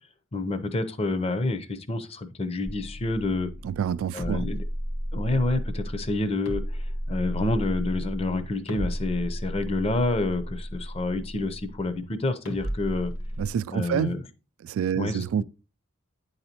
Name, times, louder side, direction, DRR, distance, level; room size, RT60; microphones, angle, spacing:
voice 1, 0.3-3.5 4.1-4.6 5.1-13.1 13.7-14.2 14.9-15.4, left 2 dB, 30° left, 0.6 m, -28 dB
sound 1, 2.6-11.9 12.4-13.5, equal, 75° left, 1.8 m, -33 dB
voice 2, 3.6-4.5 13.4-14.2 14.6-15.4, right 8 dB, 90° right, 0.3 m, -27 dB
9.5 x 4.0 x 2.8 m
head